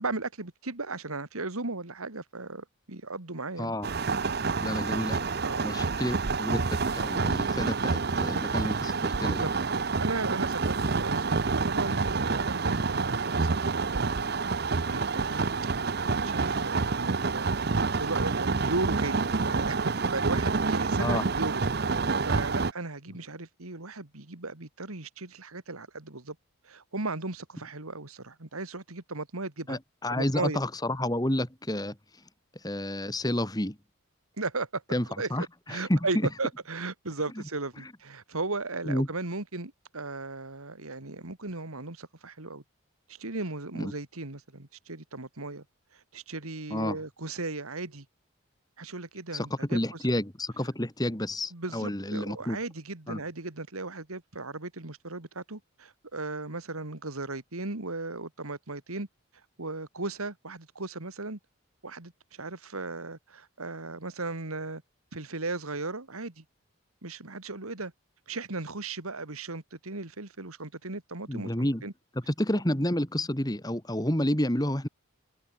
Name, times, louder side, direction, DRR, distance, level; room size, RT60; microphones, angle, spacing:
voice 1, 0.0-3.7 5.4-5.7 9.2-9.5 10.0-14.1 14.9-15.5 16.2-26.4 26.6-29.8 30.1-30.6 34.4-34.8 35.2-42.6 43.1-45.6 45.9-48.1 48.8-50.0 51.5-59.1 59.6-61.4 61.8-64.8 65.1-66.4 67.0-67.9 68.3-71.5 71.8-71.9, right 3 dB, 90° right, 2.5 m, -36 dB
sound 1, 3.8-22.7, right 4 dB, 50° right, 0.7 m, -28 dB
voice 2, 4.6-5.3 5.6-9.5 21.0-21.3 29.7-32.0 32.6-33.8 34.9-36.3 38.9-39.1 43.8-43.9 46.7-47.0 49.3-52.6 53.1-53.2 71.3-71.8 72.3-74.9, left 1 dB, 15° left, 2.2 m, -30 dB
head